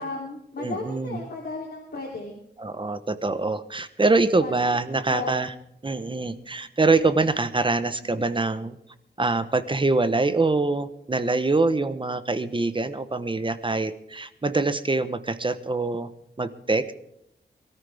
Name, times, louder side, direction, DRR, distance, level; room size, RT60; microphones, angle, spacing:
voice 1, 0.0-2.3 4.4-4.5 5.1-5.3 7.9-8.2, left 3 dB, 55° left, -1 dB, 3.2 m, -34 dB
voice 2, 0.6-1.2 2.6-5.5 5.8-8.8 9.2-16.1 16.4-16.9, right 3 dB, 25° right, 11 dB, 1.0 m, -24 dB
23.5 x 13.5 x 3.5 m, 0.77 s
wide cardioid pair, 140°, 19 cm